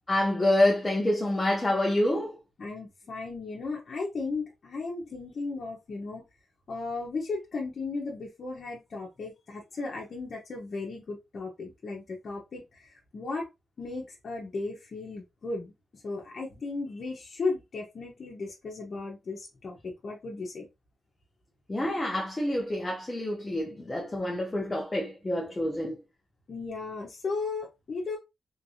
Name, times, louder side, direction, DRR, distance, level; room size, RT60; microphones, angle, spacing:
voice 1, 0.1-2.4 21.7-26.0, left 1 dB, 15° left, 0.8 m, -27 dB
voice 2, 2.6-6.2 6.7-13.5 13.8-20.7 26.5-28.2, left 3 dB, 45° left, 1.1 m, -35 dB
3.7 x 3.3 x 2.8 m
wide cardioid pair, 140°, 0 cm